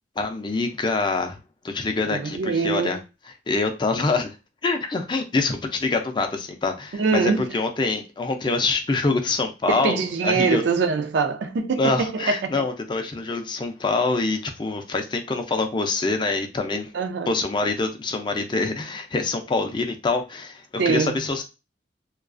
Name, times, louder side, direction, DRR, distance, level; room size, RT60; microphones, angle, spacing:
voice 1, 0.2-1.4 1.6-3.0 3.5-4.4 4.6-10.6 11.8-16.9 17.3-21.4, left 3 dB, 25° left, 0.4 m, -25 dB
voice 2, 2.1-3.0 6.9-7.5 9.7-12.5 16.9-17.3 20.8-21.2, right 5 dB, 70° right, 0.4 m, -23 dB
2.3 x 2.3 x 2.4 m
head